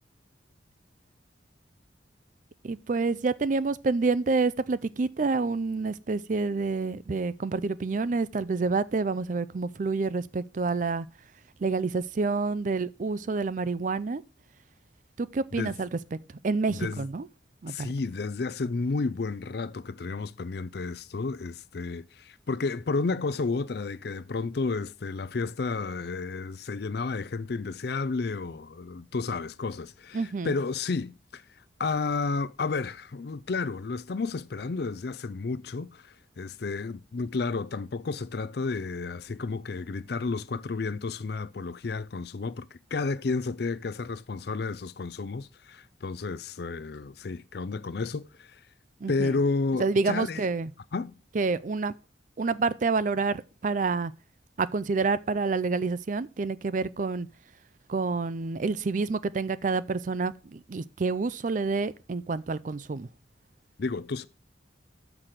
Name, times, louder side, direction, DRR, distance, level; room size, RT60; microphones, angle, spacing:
voice 1, 2.6-11.1 11.6-14.2 15.2-15.9 16.4-17.3 17.6-17.9 30.1-30.6 49.0-49.4 49.8-50.7 51.3-51.9 52.4-54.1 54.6-57.3 57.9-63.1, right 4 dB, 45° right, 0.4 m, -28 dB
voice 2, 16.7-17.0 17.7-31.4 31.8-42.7 42.9-48.6 49.1-50.5 50.9-51.1 63.8-64.3, left 4 dB, 60° left, 0.5 m, -31 dB
6.6 x 6.0 x 7.4 m
head